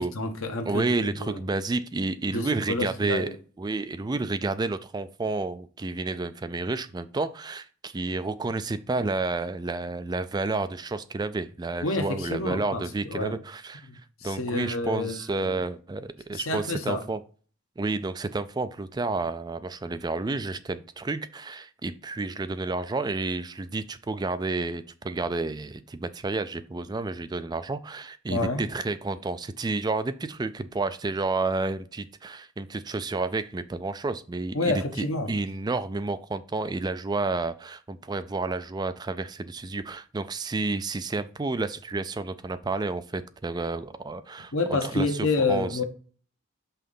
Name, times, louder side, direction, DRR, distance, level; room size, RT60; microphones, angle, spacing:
voice 1, 0.0-1.4 2.3-3.3 11.8-12.8 13.1-13.3 13.8-15.6 16.3-17.0 28.3-28.6 34.5-35.3 44.5-45.8, left 2 dB, 85° left, 1.1 m, -29 dB
voice 2, 0.7-3.3 3.6-13.9 14.2-17.2 17.8-45.8, right 3 dB, 20° right, 0.3 m, -30 dB
5.7 x 3.7 x 5.3 m
head